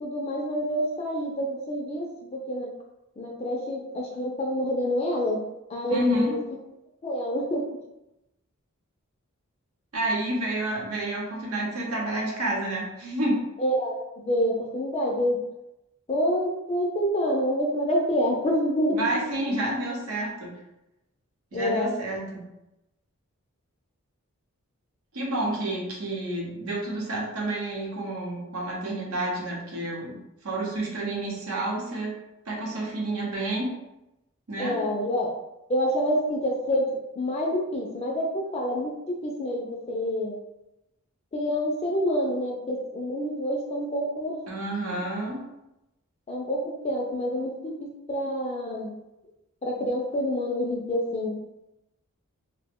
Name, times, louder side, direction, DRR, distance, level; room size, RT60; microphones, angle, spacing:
voice 1, 0.0-2.7 3.2-5.4 5.7-6.4 7.0-7.6 13.6-15.4 16.1-19.0 21.5-21.9 34.6-35.3 35.7-40.3 41.3-44.4 46.3-47.7 48.1-48.9 49.6-51.4, equal, 30° left, -1 dB, 0.4 m, -27 dB
voice 2, 5.9-6.3 9.9-13.4 18.9-20.5 21.5-22.4 25.1-32.2 32.5-33.8 34.5-34.8 44.5-45.4, right 1 dB, 80° right, -2 dB, 0.8 m, -29 dB
2.8 x 2.1 x 3.5 m, 0.91 s
head